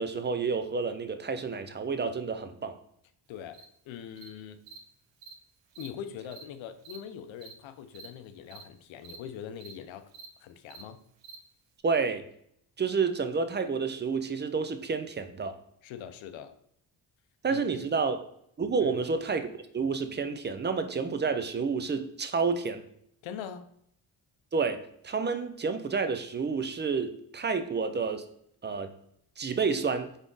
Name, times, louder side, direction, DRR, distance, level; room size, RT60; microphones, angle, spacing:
voice 1, 0.0-2.7 11.8-12.2 12.8-15.6 17.4-18.2 18.6-19.5 19.7-22.8 24.5-28.2 28.6-28.9 29.4-30.1, right 5 dB, 25° right, 9 dB, 0.4 m, -29 dB
voice 2, 3.3-4.6 5.8-10.1 10.4-11.0 15.8-16.6 17.5-17.7 18.8-19.1 23.2-23.7, left 8 dB, 85° left, 10 dB, 0.6 m, -42 dB
Cricket, 3.5-3.7 4.2-4.3 4.7-4.8 5.2-5.3 5.7-5.9 6.3-6.4 6.8-7.0 7.4-7.5 7.9-8.1 8.5-8.6 9.0-9.2 9.6-9.7 10.1-10.3 10.7-10.8 11.2-11.4, right 6 dB, 75° right, 0.8 m, -47 dB
3.7 x 3.6 x 3.8 m, 0.69 s
cardioid pair, 80°, 45 cm